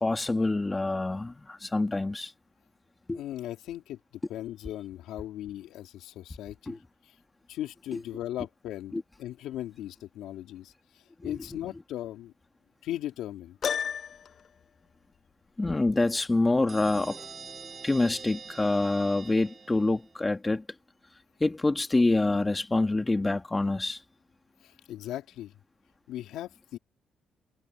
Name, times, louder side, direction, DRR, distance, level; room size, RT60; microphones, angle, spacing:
voice 1, 0.0-2.3 3.1-3.2 6.7-6.8 7.9-8.0 8.9-9.0 11.2-11.4 15.6-17.2 17.8-20.6 21.4-24.0, left 2 dB, 20° left, 2.1 m, -26 dB
voice 2, 3.1-4.0 4.3-6.8 7.5-8.9 9.2-10.7 11.2-12.3 12.8-13.6 24.6-25.5 26.1-26.8, left 13 dB, 85° left, 3.2 m, -38 dB
Piano, 13.6-14.5, left 7 dB, 55° left, 0.5 m, -31 dB
sound 1, 16.7-20.2, right 5 dB, 40° right, 6.5 m, -45 dB
cardioid pair, 90°, 0 cm